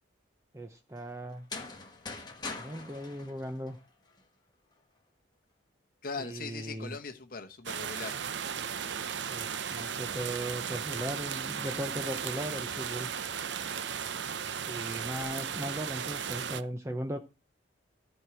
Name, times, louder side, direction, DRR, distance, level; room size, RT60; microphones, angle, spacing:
voice 1, 0.5-1.5 2.5-3.8 6.2-7.0 9.3-13.1 14.7-17.2, right 1 dB, 15° right, 0.7 m, -38 dB
sound 1, 1.3-4.2, left 3 dB, 20° left, 1.4 m, -42 dB
voice 2, 6.0-8.2, left 4 dB, 45° left, 0.9 m, -40 dB
sound 2, 7.7-16.6, right 7 dB, 65° right, 0.6 m, -36 dB
13.5 x 4.6 x 6.1 m
head